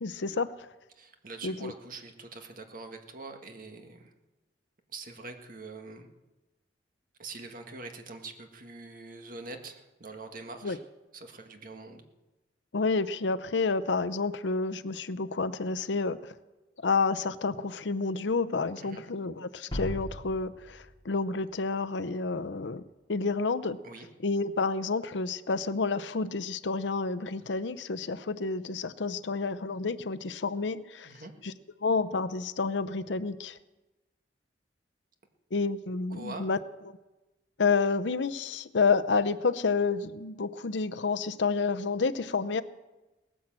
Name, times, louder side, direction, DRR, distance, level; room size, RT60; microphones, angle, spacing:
voice 1, 0.0-0.5 1.4-1.7 10.6-10.8 12.7-16.3 16.8-22.8 23.1-23.8 24.2-31.1 31.4-31.5 31.8-33.6 35.5-36.6 36.9-37.0 37.6-42.6, left 4 dB, 85° left, 12 dB, 0.7 m, -29 dB
voice 2, 0.9-4.1 4.9-6.1 7.2-10.8 11.1-12.0 18.8-19.0 23.8-24.1 31.0-31.3 36.1-36.5, right 3 dB, 50° right, 5 dB, 1.7 m, -44 dB
sound 1, 19.7-21.8, equal, 30° left, 3.9 m, -38 dB
18.5 x 10.0 x 7.6 m, 1.1 s
head